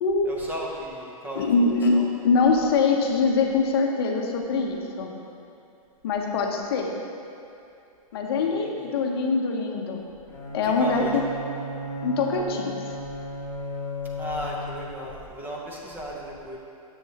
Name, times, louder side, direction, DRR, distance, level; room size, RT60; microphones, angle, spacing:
voice 1, 0.2-1.5 1.9-2.1 8.4-8.7 10.8-11.3 14.2-16.6, equal, 10° right, -3 dB, 0.7 m, -35 dB
voice 2, 1.3-2.0 2.2-5.1 6.0-6.9 8.1-10.0 10.5-11.3 12.0-12.8, left 4 dB, 40° left, 1 dB, 0.9 m, -23 dB
Bowed string instrument, 10.3-15.1, equal, 5° left, 1.8 m, -35 dB
10.0 x 7.3 x 2.9 m, 2.6 s
hypercardioid pair, 160°, 19 cm